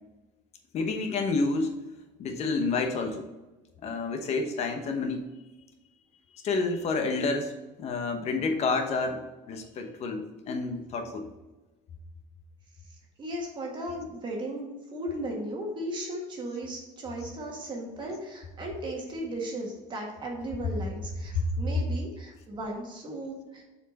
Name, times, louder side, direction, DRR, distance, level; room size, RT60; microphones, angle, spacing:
voice 1, 0.7-1.8 2.2-3.2 3.8-5.2 6.4-7.5 7.8-11.3 21.3-21.6, left 3 dB, 40° left, 5 dB, 1.0 m, -29 dB
voice 2, 13.2-23.6, right 1 dB, 30° right, -1 dB, 1.5 m, -36 dB
7.1 x 4.5 x 4.2 m, 1.1 s
cardioid pair, 150°, 16 cm